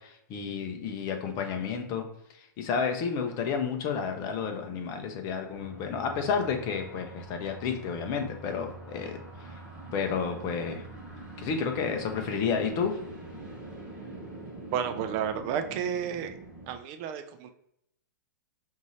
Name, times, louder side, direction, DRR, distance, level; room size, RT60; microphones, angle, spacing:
voice 1, 0.0-2.0 2.4-9.2 9.5-9.6 9.9-10.9 11.4-13.0, left 6 dB, 35° left, 5 dB, 0.7 m, -31 dB
sound 1, 5.5-16.7, right 2 dB, 10° right, 1.4 m, -44 dB
voice 2, 14.7-16.3 16.7-17.5, right 8 dB, 35° right, 8 dB, 0.5 m, -31 dB
5.3 x 2.7 x 3.1 m, 0.78 s
hypercardioid pair, 145°, 11 cm